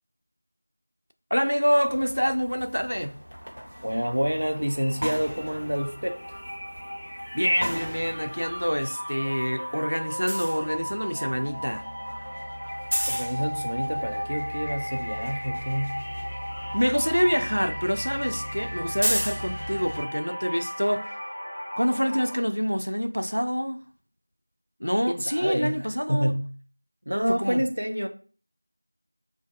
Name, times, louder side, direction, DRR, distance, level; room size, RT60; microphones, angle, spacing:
voice 1, 1.3-3.1 7.3-11.8 16.7-21.1 21.8-23.8 24.8-26.3 27.3-27.6, equal, 85° left, 0.4 m, -26 dB
sound 1, 1.9-8.9 9.2-20.0, equal, 85° right, 1.3 m, -36 dB
sound 2, 3.7-4.0 4.3-22.4, equal, 5° left, 0.5 m, -36 dB
voice 2, 3.8-6.4 13.1-16.0 25.1-26.5 27.1-28.1, equal, 55° right, 0.5 m, -28 dB
3.3 x 2.5 x 2.3 m
figure-of-eight pair, 175°, 0 cm